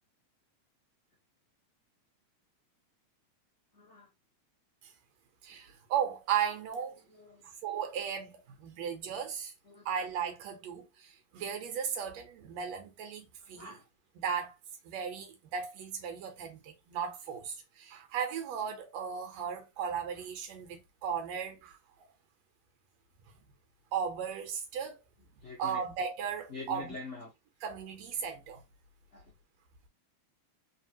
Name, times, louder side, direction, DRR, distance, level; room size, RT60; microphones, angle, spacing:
voice 1, 3.7-4.1 7.1-7.4 9.7-9.9 13.5-13.8 25.4-25.8 26.5-27.3 29.1-29.3, left 4 dB, 70° left, 0.6 m, -45 dB
voice 2, 5.4-7.0 7.4-9.5 9.9-13.8 14.2-14.5 14.8-21.8 23.9-25.0 25.6-26.9 27.6-28.6, right 7 dB, 70° right, 2.0 m, -36 dB
4.2 x 3.3 x 2.9 m
omnidirectional pair, 3.4 m